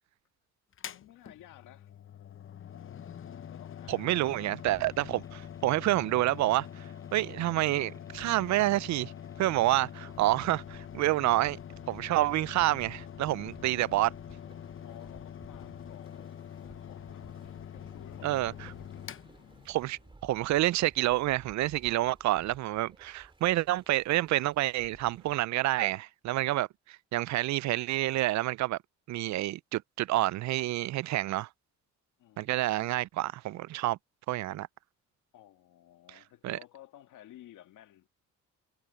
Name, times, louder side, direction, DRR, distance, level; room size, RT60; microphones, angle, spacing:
Mechanical fan, 0.7-20.1, left 9 dB, 45° left, 0.9 m, -45 dB
voice 1, 0.9-1.9 3.5-4.5 14.8-19.2 32.2-33.0 35.3-38.1, left 13 dB, 85° left, 1.9 m, -55 dB
voice 2, 3.9-6.8 7.1-9.1 9.4-11.6 11.9-14.1 18.2-18.5 19.7-28.8 29.1-31.5 32.4-34.0 34.3-34.7 36.4-36.6, right 16 dB, 65° right, 0.4 m, -28 dB
sound 1, 4.7-10.2, left 2 dB, 10° left, 4.2 m, -63 dB
sound 2, 8.1-25.4, right 2 dB, 15° right, 2.7 m, -57 dB
cardioid pair, 90°, 30 cm